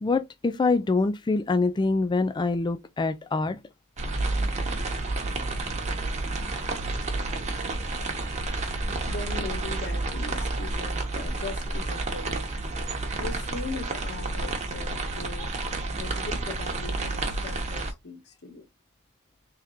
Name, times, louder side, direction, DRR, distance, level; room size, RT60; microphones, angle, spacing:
voice 1, 0.0-3.6, left 3 dB, 20° left, 0.3 m, -25 dB
sound 1, 4.0-17.9, right 2 dB, 30° right, 0.9 m, -30 dB
voice 2, 9.1-12.5 13.2-18.6, left 3 dB, 50° left, 1.2 m, -39 dB
3.6 x 3.2 x 2.9 m
head